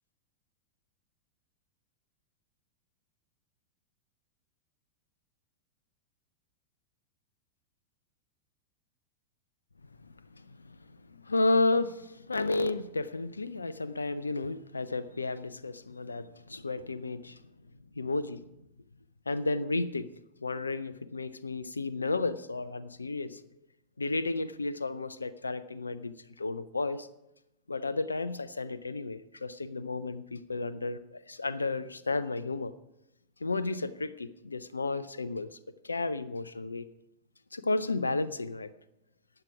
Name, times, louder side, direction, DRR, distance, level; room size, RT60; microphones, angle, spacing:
voice 1, 10.4-10.8 11.1-17.4 18.0-18.5 19.3-20.1 20.4-23.4 24.0-27.1 27.7-32.7 33.4-35.6 35.8-36.9 37.5-38.7, left 3 dB, 80° left, 16 dB, 0.4 m, -32 dB
13.0 x 8.9 x 4.8 m, 0.87 s
figure-of-eight pair, 90°, 0 cm